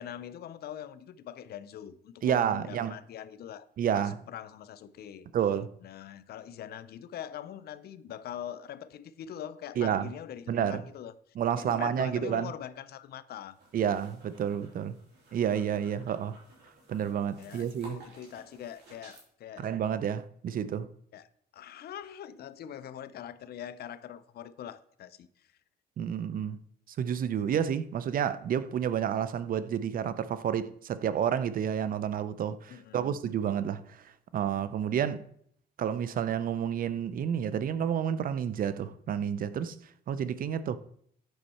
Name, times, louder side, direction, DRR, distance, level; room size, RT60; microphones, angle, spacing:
voice 1, 0.0-3.7 3.9-5.3 5.8-11.1 11.6-13.6 16.0-16.2 17.4-19.7 21.1-21.3 21.5-25.5 32.7-33.2, left 10 dB, 65° left, 0.5 m, -43 dB
voice 2, 2.2-2.9 3.8-4.2 5.3-5.7 9.8-10.1 10.5-10.8 11.4-12.5 13.7-15.0 15.3-16.3 16.9-18.0 19.6-20.9 26.0-26.6 27.0-34.0 34.3-35.2 35.8-39.8 40.1-40.8, right 8 dB, 55° right, 0.5 m, -30 dB
sound 1, 13.5-19.3, right 2 dB, 70° right, 3.1 m, -55 dB
7.9 x 5.5 x 4.2 m
cardioid pair, 115°, 18 cm